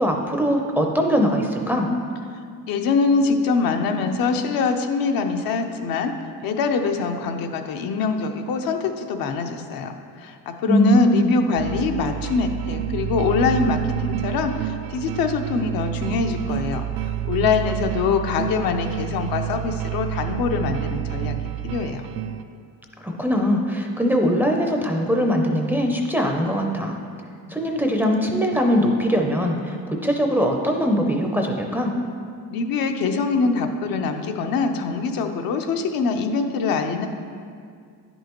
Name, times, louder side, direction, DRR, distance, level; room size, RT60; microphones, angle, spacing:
voice 1, 0.0-1.9 10.6-11.4 23.0-27.0 27.5-29.8 30.0-31.9, equal, 5° right, 1 dB, 0.5 m, -21 dB
voice 2, 2.7-6.1 6.4-21.4 21.6-22.1 32.5-37.1, left 4 dB, 70° left, 5 dB, 0.7 m, -24 dB
sound 1, 11.6-22.4, right 13 dB, 80° right, 0.5 m, -29 dB
10.0 x 5.4 x 3.0 m, 2.2 s
cardioid pair, 125°, 36 cm